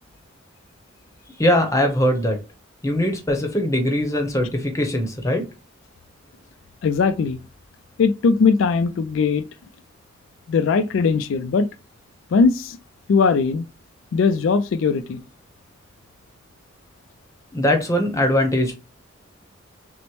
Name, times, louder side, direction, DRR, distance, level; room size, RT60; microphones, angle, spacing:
voice 1, 1.4-2.4 2.8-5.4 17.5-18.7, left 1 dB, 15° left, 0.7 m, -21 dB
voice 2, 6.8-7.4 8.0-9.4 10.5-11.7 12.3-12.8 13.1-13.6 14.1-15.2, left 5 dB, 70° left, 0.3 m, -19 dB
6.0 x 2.1 x 3.0 m
head